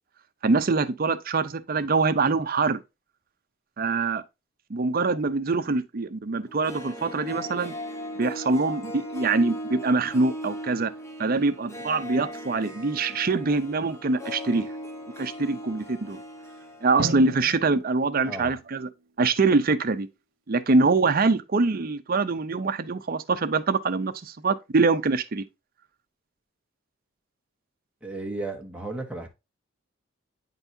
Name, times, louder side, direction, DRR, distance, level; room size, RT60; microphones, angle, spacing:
voice 1, 0.4-2.8 3.8-4.2 4.7-7.7 8.2-10.9 11.2-14.7 15.2-16.2 16.8-18.9 19.2-20.1 20.5-25.4, right 3 dB, 50° right, 0.6 m, -24 dB
Harp, 6.5-17.5 17.7-17.8, equal, 15° left, 1.0 m, -38 dB
Drum, 17.0-19.5, right 2 dB, 85° right, 0.8 m, -37 dB
voice 2, 18.2-18.6 28.0-29.3, right 2 dB, 5° right, 1.2 m, -34 dB
9.0 x 4.0 x 2.7 m
head